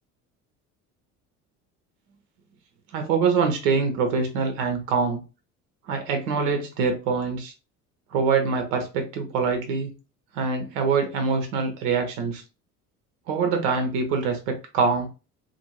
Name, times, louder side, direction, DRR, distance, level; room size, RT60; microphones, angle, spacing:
voice 1, 2.9-5.2 5.9-7.5 8.1-9.9 10.3-12.4 13.3-15.1, right 5 dB, 60° right, 0.9 m, -24 dB
2.9 x 2.7 x 2.9 m
figure-of-eight pair, 60°, 46 cm